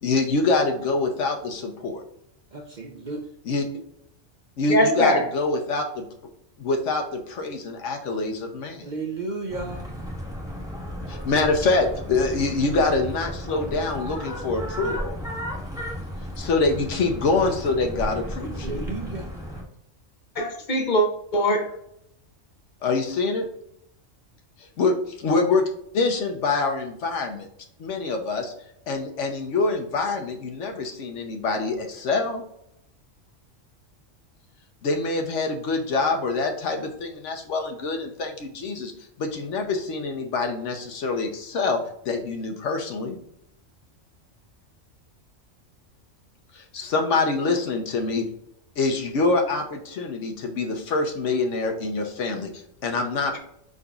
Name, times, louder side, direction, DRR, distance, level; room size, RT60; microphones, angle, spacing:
voice 1, 0.0-2.0 3.5-3.6 4.6-6.1 6.6-8.9 11.1-15.2 16.4-18.8 22.8-23.5 24.8-25.7 25.9-27.5 27.8-28.5 28.9-32.4 34.8-38.9 39.2-41.8 42.0-43.2 46.5-48.3 48.8-52.5 52.8-53.4, left 3 dB, 70° left, 4 dB, 1.1 m, -25 dB
voice 2, 2.5-3.2 8.8-9.8 18.6-19.3, right 3 dB, 50° right, 1 dB, 0.6 m, -33 dB
voice 3, 4.7-5.3 20.4-21.1 21.3-21.8, equal, 45° left, 4 dB, 0.7 m, -21 dB
sound 1, 9.5-19.6, equal, 5° right, 0.9 m, -34 dB
5.2 x 3.9 x 2.3 m, 0.75 s
omnidirectional pair, 1.3 m